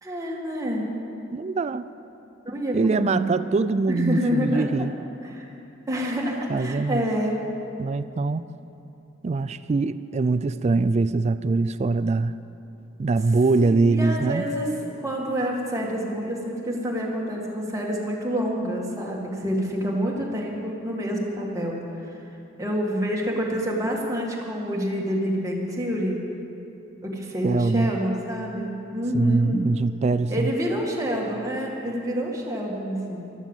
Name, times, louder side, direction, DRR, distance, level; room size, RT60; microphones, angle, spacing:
voice 1, 0.0-0.8 2.5-3.4 3.9-4.9 5.2-5.5 5.9-7.4 13.6-22.2 22.6-26.2 27.0-29.6 30.3-33.3, equal, 15° right, -2 dB, 2.0 m, -27 dB
voice 2, 1.3-1.8 2.7-4.9 6.5-7.1 7.8-8.5 9.2-12.4 13.0-14.4 27.4-27.9 29.1-30.5, right 3 dB, 35° right, 14 dB, 0.3 m, -23 dB
13.5 x 12.5 x 7.3 m, 2.8 s
head